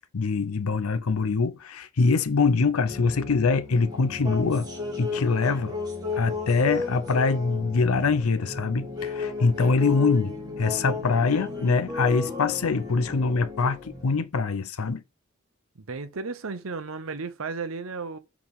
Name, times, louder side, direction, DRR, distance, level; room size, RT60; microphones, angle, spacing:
voice 1, 0.1-4.7 5.0-5.8 6.1-15.0, left 4 dB, 85° left, 0.6 m, -24 dB
sound 1, 2.9-14.2, left 4 dB, 20° right, 2.2 m, -34 dB
voice 2, 15.8-18.2, right 4 dB, 65° right, 0.8 m, -34 dB
5.8 x 4.7 x 3.6 m
head